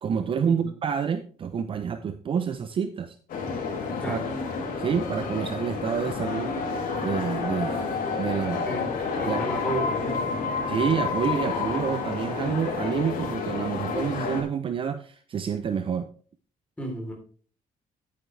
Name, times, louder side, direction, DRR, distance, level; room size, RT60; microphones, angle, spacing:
voice 1, 0.0-3.1 4.1-4.2 4.8-6.8 7.0-7.8 8.2-8.7 9.2-9.4 10.7-16.1, right 7 dB, 35° right, 9 dB, 0.6 m, -28 dB
sound 1, 3.3-14.4, left 4 dB, 70° left, 4.0 m, -31 dB
sound 2, 6.4-13.2, left 5 dB, 50° left, 1.7 m, -33 dB
voice 2, 9.2-10.4 16.8-17.1, right 1 dB, 10° left, 0 dB, 3.6 m, -32 dB
10.5 x 9.3 x 3.3 m, 0.43 s
cardioid pair, 175°, 15 cm